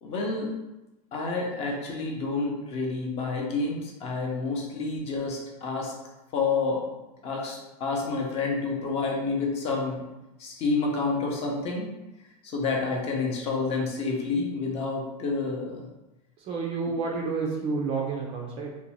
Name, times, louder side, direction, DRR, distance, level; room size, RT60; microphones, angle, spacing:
voice 1, 0.0-0.5 1.1-5.9 6.3-6.9 7.2-10.0 10.4-11.9 12.4-15.9, left 3 dB, 30° left, -1 dB, 0.6 m, -29 dB
voice 2, 16.4-18.7, right 4 dB, 30° right, -1 dB, 0.4 m, -30 dB
2.5 x 2.1 x 3.0 m, 1.0 s
supercardioid pair, 130°, 20 cm